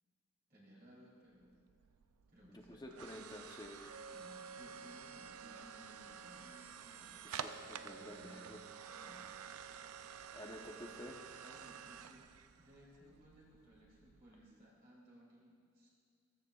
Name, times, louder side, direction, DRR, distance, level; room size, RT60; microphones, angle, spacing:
voice 1, 0.5-1.5 2.3-2.9 4.1-7.4 7.9-8.5 8.9-9.4 11.4-12.3 12.6-15.9, equal, 45° right, -6 dB, 3.1 m, -60 dB
sound 1, 1.4-14.5, right 7 dB, 80° right, 0.4 m, -50 dB
voice 2, 2.5-4.1 7.2-8.6 10.3-11.3, left 1 dB, 20° left, 2 dB, 0.8 m, -51 dB
14.5 x 14.0 x 2.4 m, 2.3 s
head